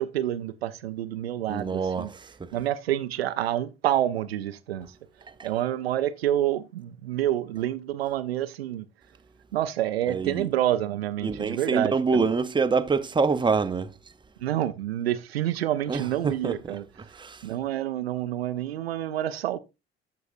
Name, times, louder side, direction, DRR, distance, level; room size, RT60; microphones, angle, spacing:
voice 1, 0.0-2.1 2.5-5.0 5.4-8.9 9.5-12.3 14.4-16.9 17.4-19.6, right 12 dB, 85° right, 0.5 m, -28 dB
voice 2, 1.5-2.5 5.4-5.5 10.1-10.5 11.2-13.9 15.9-16.8 17.1-17.4, right 4 dB, 15° right, 0.7 m, -26 dB
14.0 x 4.7 x 2.5 m
figure-of-eight pair, 55°, 30 cm